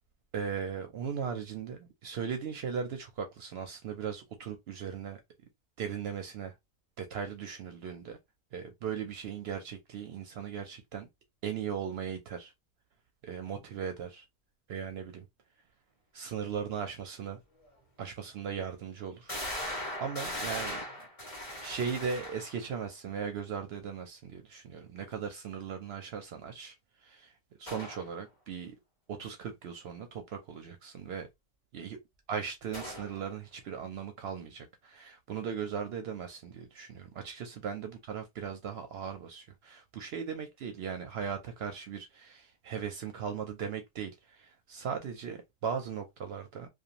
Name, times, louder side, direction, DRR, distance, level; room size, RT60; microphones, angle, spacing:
voice 1, 0.3-5.2 5.8-6.5 7.0-8.2 8.5-11.1 11.4-12.5 13.2-14.2 14.7-15.2 16.1-17.4 18.0-19.3 19.6-20.8 21.6-26.7 27.0-27.3 27.6-28.8 29.1-31.3 31.7-32.0 32.3-46.7, right 7 dB, 70° right, 0.8 m, -38 dB
sound 1, 17.7-17.8 18.4-18.5 19.3-22.7 27.7-28.1 32.7-33.2, left 1 dB, 35° left, 1.3 m, -39 dB
2.5 x 2.3 x 2.8 m
omnidirectional pair, 1.1 m